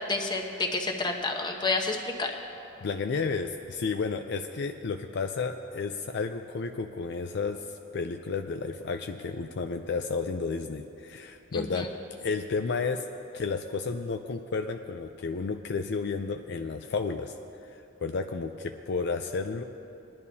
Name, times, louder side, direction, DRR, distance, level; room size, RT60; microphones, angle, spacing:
voice 1, 0.0-2.3 11.5-11.9, left 3 dB, 25° left, 2 dB, 1.0 m, -30 dB
voice 2, 2.8-7.6 7.9-11.9 12.2-13.0 13.3-17.3 17.7-19.6, left 4 dB, 60° left, 6 dB, 0.4 m, -32 dB
20.5 x 10.5 x 2.8 m, 2.8 s
head